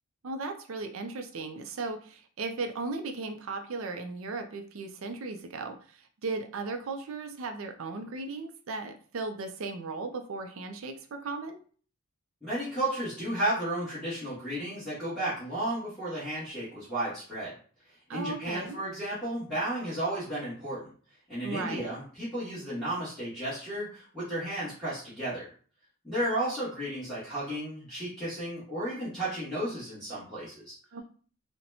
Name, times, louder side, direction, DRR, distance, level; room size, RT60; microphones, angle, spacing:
voice 1, 0.2-11.6 18.1-18.8 21.4-21.9 30.9-31.0, right 3 dB, 80° right, 6 dB, 0.5 m, -36 dB
voice 2, 12.4-17.5 18.1-20.9 21.3-25.5 26.0-30.7, right 1 dB, ahead, -13 dB, 1.3 m, -33 dB
4.1 x 2.1 x 2.7 m, 0.43 s
head